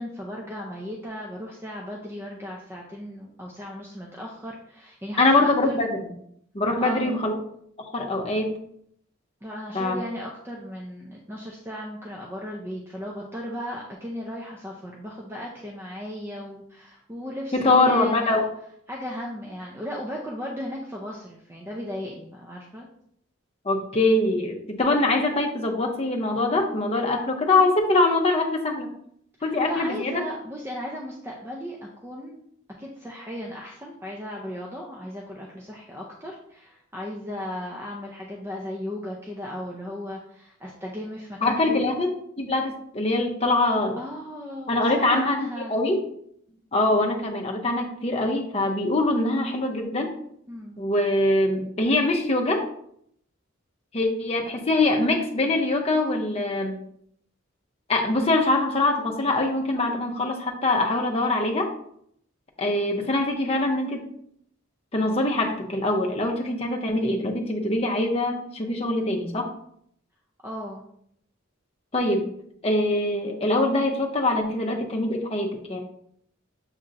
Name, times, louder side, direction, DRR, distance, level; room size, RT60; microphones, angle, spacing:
voice 1, 0.0-5.8 6.8-7.2 9.4-18.4 18.9-22.9 29.4-32.4 32.8-41.9 43.6-45.8 50.5-50.8 70.4-70.8, equal, 10° right, -1 dB, 0.4 m, -36 dB
voice 2, 5.2-5.9 6.5-7.3 7.9-8.6 9.7-10.0 17.5-18.5 23.6-28.9 29.4-30.2 41.4-42.1 42.4-44.0 44.7-45.4 45.7-46.0 46.7-50.1 50.8-52.7 53.9-56.7 57.9-61.7 62.6-64.0 64.9-69.5 71.9-72.3 72.6-75.8, left 2 dB, 30° left, 1 dB, 0.6 m, -23 dB
7.2 x 2.9 x 2.5 m, 0.69 s
head